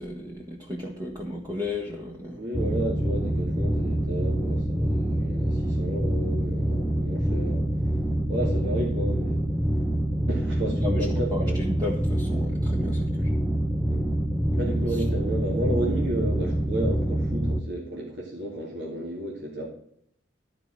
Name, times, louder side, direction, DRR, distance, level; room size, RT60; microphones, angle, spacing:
voice 1, 0.0-2.4 10.8-13.3, left 2 dB, 20° right, 0 dB, 1.3 m, -34 dB
voice 2, 2.3-7.9 8.3-9.4 10.3-11.6 13.1-13.2 13.9-14.1 14.5-19.7, right 1 dB, 70° right, -2 dB, 2.4 m, -32 dB
sound 1, 2.5-17.6, right 1 dB, ahead, 0.6 m, -26 dB
13.5 x 4.9 x 7.4 m, 0.68 s
head